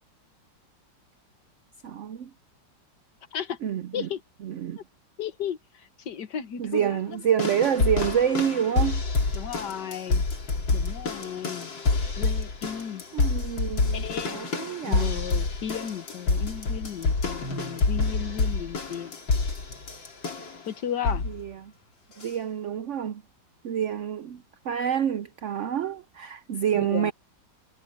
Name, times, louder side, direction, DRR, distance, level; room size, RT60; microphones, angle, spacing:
voice 1, 1.8-2.3 3.6-4.1 4.4-4.8 6.6-9.0 13.1-15.2 21.3-21.7 22.2-23.2 23.6-27.1, right 9 dB, 85° right, 0.6 m, -28 dB
voice 2, 5.2-7.2 9.3-10.3 10.7-11.7 12.2-13.0 13.9-14.4 14.9-19.1 20.7-21.2 26.5-27.1, left 8 dB, 70° left, 1.8 m, -34 dB
sound 1, 7.4-20.6 21.0-21.4 22.2-22.3, left 3 dB, 85° left, 3.7 m, -27 dB
omnidirectional pair, 2.0 m